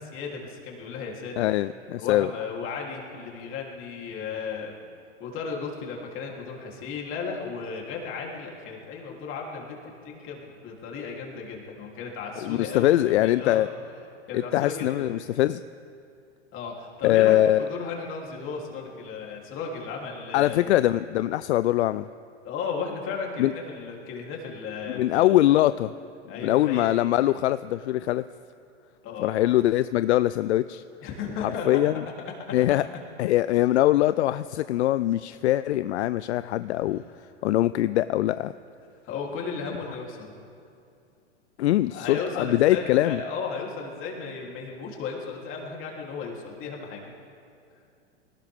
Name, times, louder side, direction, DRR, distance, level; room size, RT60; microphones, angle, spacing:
voice 1, 0.0-1.5 2.0-4.7 5.2-9.8 10.0-13.6 14.3-15.1 16.5-20.7 22.4-25.4 26.3-26.9 29.0-29.4 31.0-31.9 39.0-40.3 41.9-47.1, left 5 dB, 35° left, -1 dB, 3.3 m, -35 dB
voice 2, 1.4-2.3 12.4-13.7 14.3-15.6 17.0-17.6 20.3-22.0 23.4-23.5 24.9-25.9 26.4-28.2 29.2-30.8 31.4-32.0 32.5-32.8 33.2-37.0 37.4-38.5 41.6-43.2, left 14 dB, 70° left, 15 dB, 0.5 m, -22 dB
21.0 x 18.5 x 3.6 m, 2.5 s
hypercardioid pair, 120°, 35 cm